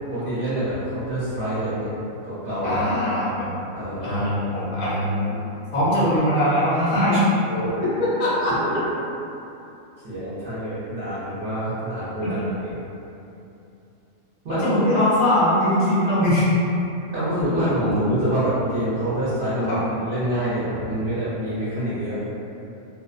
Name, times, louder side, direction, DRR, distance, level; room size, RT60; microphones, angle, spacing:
voice 1, 0.1-1.9 2.2-2.8 3.7-4.6 7.5-7.8 8.5-8.8 10.0-12.7 14.4-14.8 17.1-22.2, right 1 dB, 50° right, -12 dB, 0.7 m, -26 dB
voice 2, 2.6-3.5 4.0-5.4 5.7-7.4 7.8-8.5 14.5-16.5 19.7-19.8, left 1 dB, 35° left, -10 dB, 0.4 m, -21 dB
2.4 x 2.2 x 2.4 m, 2.8 s
omnidirectional pair, 1.4 m